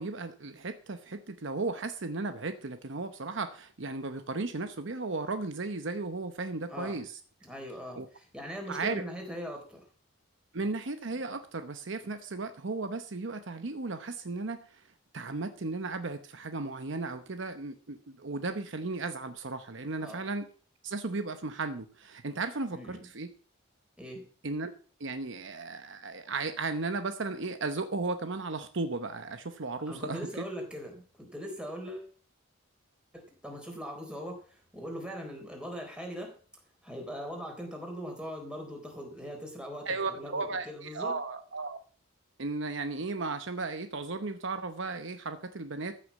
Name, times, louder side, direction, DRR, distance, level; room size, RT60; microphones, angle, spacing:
voice 1, 0.0-7.2 7.9-8.1 8.7-9.0 10.5-14.8 15.1-20.5 20.8-23.3 24.4-24.7 25.0-30.5 39.8-41.8 42.4-46.0, right 3 dB, 60° right, 9 dB, 0.9 m, -35 dB
voice 2, 6.7-7.0 7.4-9.8 20.0-20.2 22.7-23.1 24.0-24.2 29.9-32.1 33.1-34.4 34.7-36.3 36.8-41.2, equal, 5° right, 1 dB, 3.9 m, -40 dB
14.5 x 6.7 x 7.4 m, 0.43 s
head